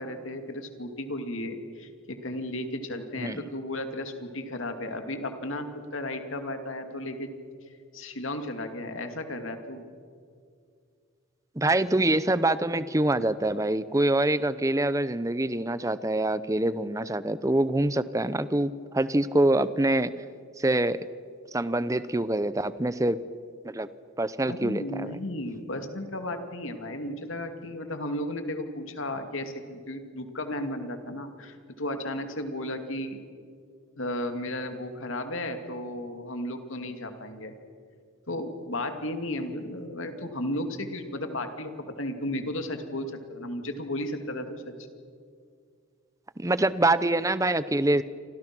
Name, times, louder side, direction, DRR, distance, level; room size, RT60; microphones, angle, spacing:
voice 1, 0.0-7.3 7.9-9.8 24.5-33.2 34.0-37.5 38.3-44.7, left 1 dB, 70° left, 6 dB, 2.5 m, -34 dB
voice 2, 11.6-20.1 20.6-21.0 21.5-23.2 23.6-23.9 24.2-25.2 46.4-48.0, right 1 dB, 15° right, 15 dB, 0.7 m, -25 dB
28.5 x 26.0 x 6.2 m, 2.2 s
head